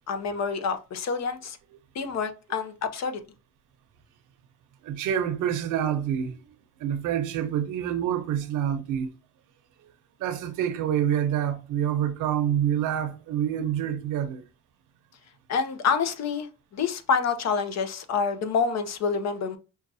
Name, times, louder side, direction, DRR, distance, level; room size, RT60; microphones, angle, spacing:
voice 1, 0.1-1.6 1.9-3.2 15.5-19.6, left 5 dB, 60° left, 0.7 m, -27 dB
voice 2, 4.8-6.4 6.8-9.1 10.2-14.4, right 10 dB, 90° right, 0.8 m, -27 dB
5.6 x 2.4 x 2.7 m
cardioid pair, 90°, 30 cm